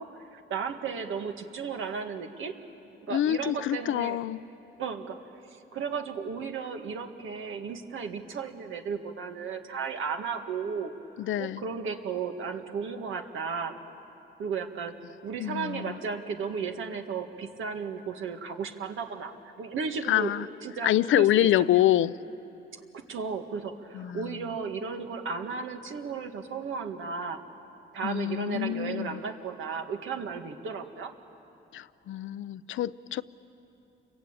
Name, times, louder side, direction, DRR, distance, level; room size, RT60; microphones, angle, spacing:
voice 1, 0.0-2.6 3.1-4.2 4.8-10.9 11.4-13.8 14.4-20.3 20.6-21.8 22.9-27.4 27.9-31.1, right 5 dB, 90° right, 1.8 m, -35 dB
voice 2, 3.1-4.4 11.2-11.6 15.4-15.8 20.1-20.4 20.8-22.1 23.9-24.3 28.0-29.2 31.7-33.2, left 13 dB, 85° left, 0.6 m, -26 dB
29.0 x 22.5 x 8.9 m
cardioid pair, 100°, 20 cm